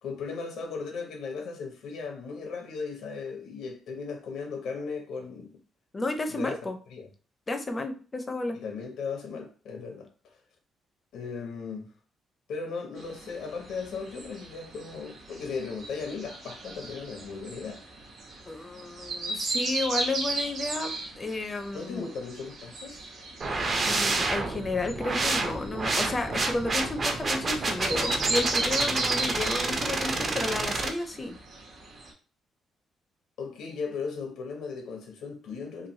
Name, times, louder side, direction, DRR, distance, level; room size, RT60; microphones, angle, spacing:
voice 1, 0.0-5.5 6.3-6.6 6.9-7.1 8.5-10.4 11.1-11.9 12.5-17.8 21.7-23.0 33.4-35.9, left 5 dB, 80° left, 0.7 m, -37 dB
voice 2, 5.9-6.8 7.5-8.6 18.5-22.1 23.8-31.4, left 2 dB, 25° left, 0.5 m, -32 dB
sound 1, 13.0-32.1, right 3 dB, 70° right, 0.9 m, -36 dB
sound 2, 23.4-30.9, right 3 dB, 35° right, 0.5 m, -29 dB
3.1 x 2.5 x 2.7 m
cardioid pair, 115°, 0 cm